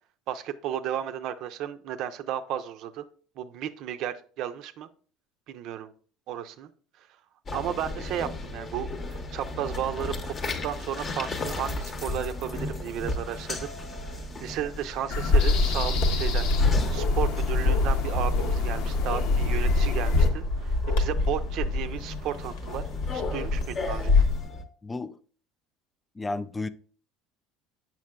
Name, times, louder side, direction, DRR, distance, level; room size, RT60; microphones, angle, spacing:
voice 1, 0.3-3.1 3.4-4.9 5.5-5.9 6.3-6.7 7.5-10.3 10.6-13.7 14.0-22.8 23.1-24.2, right 10 dB, 60° right, 0.5 m, -34 dB
sound 1, 7.5-24.6, left 2 dB, 35° left, 0.8 m, -36 dB
sound 2, 15.1-20.3, left 3 dB, 70° left, 0.7 m, -25 dB
Bark, 16.4-24.4, left 3 dB, 85° left, 1.2 m, -27 dB
voice 2, 24.8-25.2 26.2-26.7, left 3 dB, 15° left, 0.3 m, -32 dB
7.4 x 5.7 x 2.3 m
supercardioid pair, 105°, 0 cm